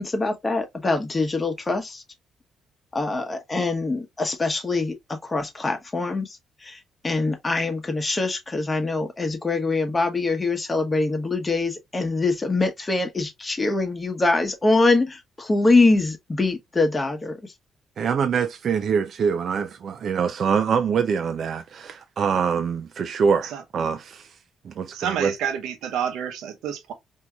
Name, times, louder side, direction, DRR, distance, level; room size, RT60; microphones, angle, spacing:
voice 1, 0.0-2.0 2.9-17.5, left 3 dB, 25° left, 1.0 m, -24 dB
voice 2, 18.0-24.3 24.6-25.3, right 6 dB, 55° right, 0.4 m, -24 dB
voice 3, 24.9-26.9, right 8 dB, 85° right, 0.7 m, -28 dB
4.4 x 2.7 x 2.3 m
cardioid pair, 90°, 0 cm